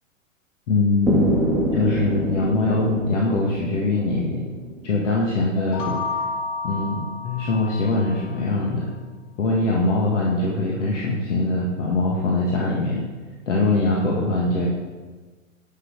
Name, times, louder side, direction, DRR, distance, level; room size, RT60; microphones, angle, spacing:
voice 1, 0.7-1.3 1.7-4.4 4.8-6.0 6.6-8.9 9.4-13.0 13.5-14.7, left 2 dB, 65° left, -3 dB, 2.1 m, -22 dB
sound 1, 1.1-5.0, equal, ahead, 1.3 m, -26 dB
sound 2, 5.6-8.3, left 4 dB, 40° left, 1.9 m, -31 dB
11.5 x 6.1 x 6.4 m, 1.3 s
hypercardioid pair, 115°, 40 cm